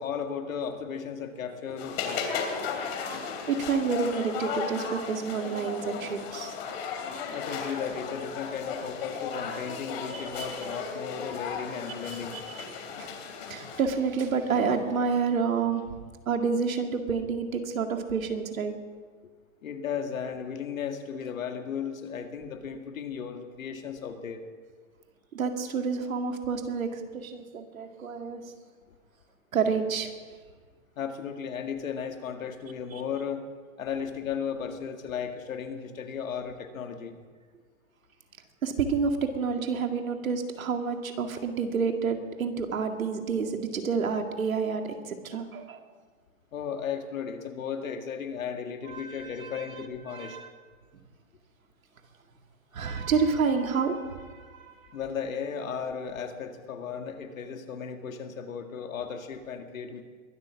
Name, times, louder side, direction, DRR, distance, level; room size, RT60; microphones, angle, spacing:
voice 1, 0.0-2.3 7.3-12.4 19.6-24.4 31.0-33.4 33.8-37.2 46.5-50.4 54.9-60.0, left 7 dB, 80° left, 6 dB, 2.1 m, -35 dB
sound 1, 1.8-13.8, left 6 dB, 45° left, 2.9 m, -35 dB
voice 2, 3.5-6.6 10.1-10.5 12.0-12.4 13.0-13.1 13.5-15.8 16.3-18.7 25.3-28.5 29.5-30.1 38.6-45.8 48.8-49.7 50.1-50.5 52.7-54.9, right 5 dB, 90° right, 5 dB, 2.1 m, -29 dB
22.0 x 8.2 x 6.3 m, 1.5 s
hypercardioid pair, 145°, 40 cm